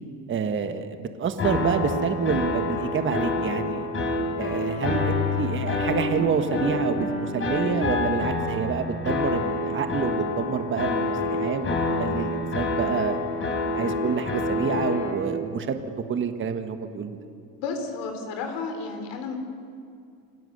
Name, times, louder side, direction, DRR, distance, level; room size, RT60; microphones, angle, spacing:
voice 1, 0.3-3.9 4.4-13.2 13.7-15.8 16.1-17.2, right 6 dB, 30° right, 7 dB, 1.4 m, -28 dB
sound 1, 1.4-15.1, left 2 dB, 30° left, 4.3 m, -27 dB
voice 2, 17.6-19.4, left 4 dB, 70° left, 5 dB, 4.0 m, -32 dB
27.5 x 17.5 x 6.6 m, 2.4 s
supercardioid pair, 110°, 42 cm